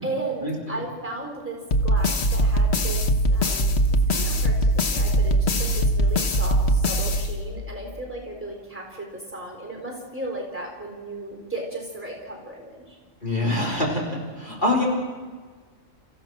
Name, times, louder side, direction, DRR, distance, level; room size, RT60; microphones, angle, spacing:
voice 1, 0.0-3.0 3.3-3.7 4.1-13.0, right 2 dB, 10° right, 1 dB, 4.0 m, -35 dB
sound 1, 1.7-7.8, right 1 dB, 55° left, 1.2 m, -21 dB
voice 2, 13.2-14.0 14.4-14.8, left 2 dB, 35° left, -3 dB, 4.5 m, -24 dB
30.0 x 15.0 x 6.2 m, 1.5 s
omnidirectional pair, 1.4 m